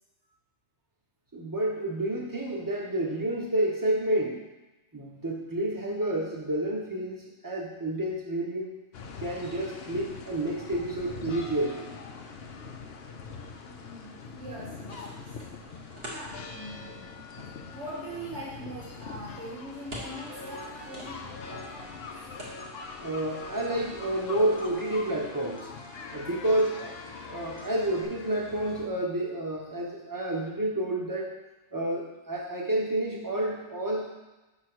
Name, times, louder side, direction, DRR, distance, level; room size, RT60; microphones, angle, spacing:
voice 1, 1.3-4.4 4.9-8.8 9.2-11.9 23.0-25.7 26.1-26.9 27.3-31.4 31.7-34.1, right 1 dB, 20° right, -2 dB, 1.1 m, -29 dB
sound 1, 8.9-28.9, left 4 dB, 65° left, 0.9 m, -43 dB
voice 2, 13.7-15.7 16.0-17.1 17.7-22.3 26.3-26.5, right 1 dB, 80° right, -6 dB, 1.8 m, -43 dB
sound 2, 14.4-25.3, equal, 60° right, 1.7 m, -49 dB
sound 3, 20.1-28.1, left 2 dB, 30° left, 0.6 m, -46 dB
6.0 x 4.0 x 6.1 m, 1.1 s
omnidirectional pair, 1.2 m